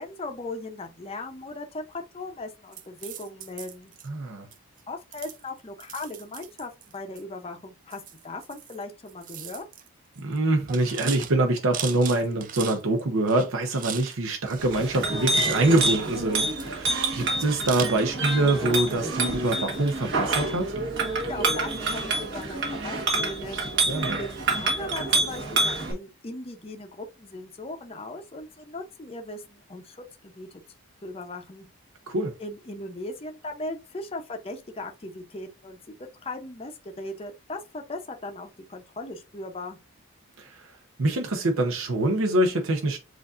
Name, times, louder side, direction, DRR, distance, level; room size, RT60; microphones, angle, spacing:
voice 1, 0.0-3.9 4.9-9.6 21.3-30.6 31.0-31.7 32.4-39.8, left 2 dB, 25° left, 0.6 m, -38 dB
sound 1, 2.7-4.1 4.5-4.8 5.1-7.2 7.9-8.8 9.1-9.9 10.2-10.4 10.7-13.0 13.3-14.2 14.4-16.0 16.3-17.0 17.7-17.8, right 9 dB, 40° right, 0.4 m, -38 dB
voice 2, 4.1-4.5 10.2-20.7 23.9-24.2 32.1-32.3 40.4-40.7 41.0-43.0, right 2 dB, 70° right, 0.7 m, -25 dB
Chink clink, 14.6-25.9, right 2 dB, 55° right, 1.2 m, -27 dB
7.7 x 2.6 x 2.4 m
head